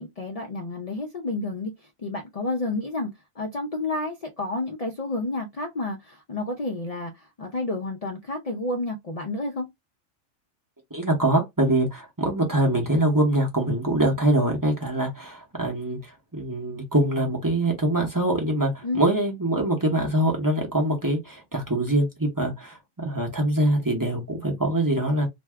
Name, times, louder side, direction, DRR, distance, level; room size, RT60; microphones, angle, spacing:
voice 1, 0.0-9.7 18.8-19.0, left 2 dB, 75° left, 0.3 m, -30 dB
voice 2, 10.9-25.3, right 1 dB, 20° right, 0.6 m, -24 dB
2.6 x 2.3 x 3.3 m
omnidirectional pair, 1.4 m